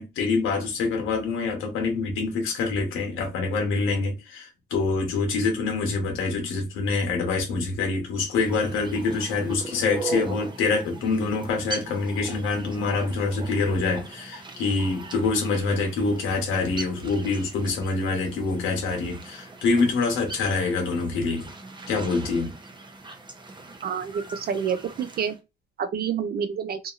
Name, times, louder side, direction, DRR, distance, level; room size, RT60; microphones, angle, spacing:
voice 1, 0.0-21.5 21.9-22.5, left 4 dB, 90° left, 1.1 m, -26 dB
sound 1, 8.3-25.4, right 3 dB, 25° right, 0.7 m, -40 dB
voice 2, 23.8-25.3 25.8-26.8, right 7 dB, 50° right, 0.4 m, -28 dB
2.7 x 2.6 x 2.4 m
cardioid pair, 90°, 20 cm